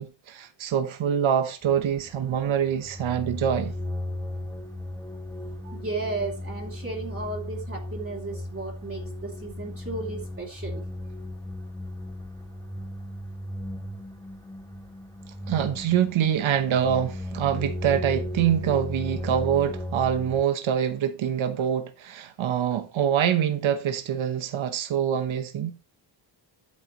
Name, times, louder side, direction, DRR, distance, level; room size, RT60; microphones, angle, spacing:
voice 1, 0.0-3.7 15.5-25.8, right 9 dB, 80° right, 1.1 m, -25 dB
sound 1, 1.6-20.4, left 1 dB, 10° left, 2.4 m, -36 dB
voice 2, 5.6-10.8, right 3 dB, 30° right, 2.7 m, -34 dB
9.1 x 8.7 x 3.0 m
cardioid pair, 95°, 47 cm